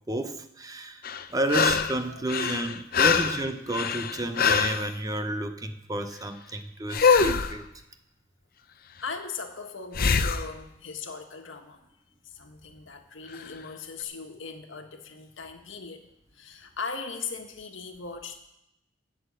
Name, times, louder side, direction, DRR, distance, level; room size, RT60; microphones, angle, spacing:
voice 1, 0.1-1.0 1.3-7.7, right 1 dB, 20° right, 9 dB, 0.7 m, -31 dB
sound 1, 1.0-2.0 2.3-4.9 6.9-7.5 9.9-10.5 13.4-13.5, left 5 dB, 50° left, 0.7 m, -23 dB
voice 2, 8.9-11.9 12.2-16.0 16.3-18.4, left 5 dB, 70° left, 4 dB, 1.5 m, -39 dB
15.5 x 6.4 x 7.7 m, 0.87 s
head